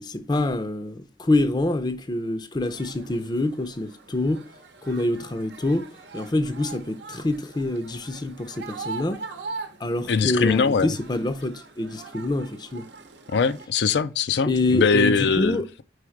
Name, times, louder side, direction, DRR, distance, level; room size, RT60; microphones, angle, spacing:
voice 1, 0.0-4.4 4.8-9.2 9.8-12.9 14.5-15.7, left 2 dB, 25° left, 0.5 m, -26 dB
sound 1, 2.6-13.7, right 4 dB, 75° right, 0.8 m, -42 dB
voice 2, 10.1-10.9 13.3-15.6, left 5 dB, 75° left, 0.4 m, -21 dB
4.8 x 4.7 x 4.5 m
head